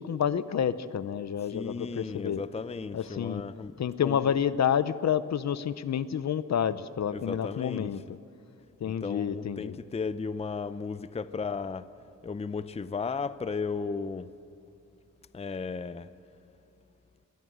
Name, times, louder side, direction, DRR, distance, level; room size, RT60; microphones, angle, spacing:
voice 1, 0.0-2.4 2.9-3.4 3.8-8.0 8.8-9.8, left 8 dB, 55° left, 0.8 m, -29 dB
voice 2, 1.5-3.8 4.0-4.4 7.1-7.9 8.8-11.9 12.2-14.3 15.3-16.1, left 5 dB, 20° left, 0.6 m, -35 dB
22.5 x 17.0 x 8.0 m
cardioid pair, 100°, 32 cm